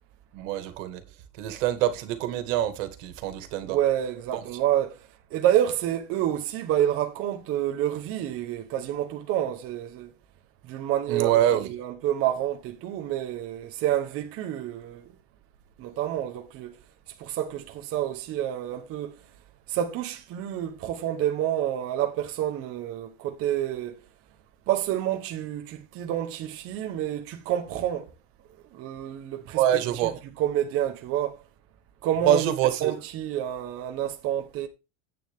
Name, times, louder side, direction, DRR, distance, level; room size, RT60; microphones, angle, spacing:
voice 1, 0.3-1.0 1.4-3.8 4.3-4.4 11.1-11.7 29.5-30.2 32.3-32.9, right 12 dB, 80° right, 2.1 m, -25 dB
voice 2, 3.6-10.1 10.6-15.2 15.8-16.8 17.2-19.2 19.7-24.0 24.7-28.1 28.7-29.6 30.4-31.4 32.0-32.5 32.8-34.7, right 11 dB, 35° right, 1.1 m, -28 dB
9.9 x 8.9 x 3.6 m
cardioid pair, 175°, 37 cm